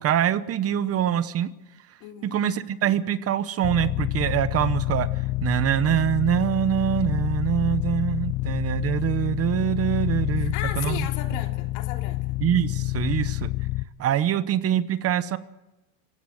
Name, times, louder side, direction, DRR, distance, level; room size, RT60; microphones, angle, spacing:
voice 1, 0.0-1.5 2.2-11.4 12.4-13.5 14.0-15.4, right 10 dB, 35° right, 14 dB, 0.9 m, -24 dB
voice 2, 2.0-2.4 10.4-12.4, left 11 dB, 70° left, 4 dB, 3.3 m, -36 dB
sound 1, 3.6-13.8, left 20 dB, 40° left, 0.6 m, -28 dB
26.0 x 16.0 x 6.4 m, 1.0 s
cardioid pair, 145°, 41 cm